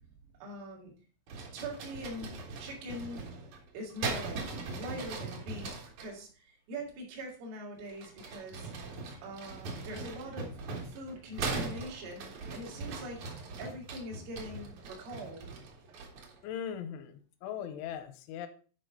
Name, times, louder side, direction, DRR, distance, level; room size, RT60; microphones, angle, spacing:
voice 1, 0.4-0.9 1.5-2.3 2.6-3.3 3.7-4.4 4.7-8.7 9.2-10.5 10.8-13.3 13.6-15.5, equal, 85° right, -2 dB, 5.1 m, -43 dB
sound 1, 1.3-6.1 7.9-16.4, right 3 dB, 65° right, 1.8 m, -40 dB
voice 2, 16.4-18.5, left 9 dB, 85° left, 10 dB, 3.1 m, -39 dB
11.0 x 4.9 x 3.8 m, 0.39 s
omnidirectional pair, 5.6 m